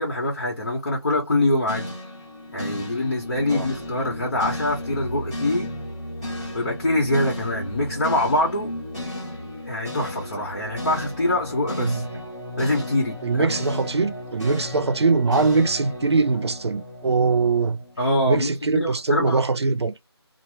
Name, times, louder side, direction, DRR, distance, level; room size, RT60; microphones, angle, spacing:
voice 1, 0.0-1.9 2.5-5.7 6.5-8.7 9.7-12.0 12.6-13.5 18.0-19.4, left 1 dB, 50° left, 1.2 m, -24 dB
sound 1, 1.7-17.9, left 1 dB, 10° left, 1.1 m, -34 dB
voice 2, 11.8-12.2 13.2-17.8 18.3-19.9, right 4 dB, 75° right, 0.6 m, -22 dB
2.9 x 2.1 x 3.2 m
figure-of-eight pair, 175°, 14 cm